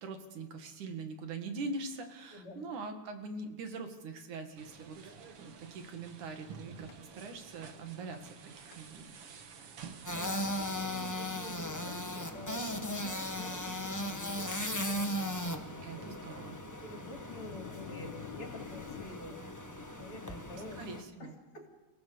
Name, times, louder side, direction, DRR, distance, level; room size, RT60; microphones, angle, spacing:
voice 1, 0.0-9.1 15.8-16.6 20.8-21.3, right 3 dB, 90° right, 6 dB, 3.6 m, -43 dB
voice 2, 2.3-2.6 9.4-9.8 10.1-14.6 14.9-15.7 15.9-16.1 16.8-19.4 20.0-20.8 21.2-21.7, left 2 dB, 45° left, 3 dB, 3.6 m, -48 dB
sound 1, 4.6-10.2, right 6 dB, 55° right, 2.3 m, -50 dB
Thunder, 6.9-7.0 8.1-8.4 8.7-8.8 9.5-9.6 10.4-10.7 11.1-11.3 12.2-12.3 12.9-13.0 13.3-13.4 14.0-15.0 15.2-19.1, left 10 dB, 80° left, 2.3 m, -50 dB
sound 2, 10.0-21.0, equal, 25° left, 0.4 m, -38 dB
30.0 x 16.5 x 7.0 m, 1.2 s
omnidirectional pair, 3.4 m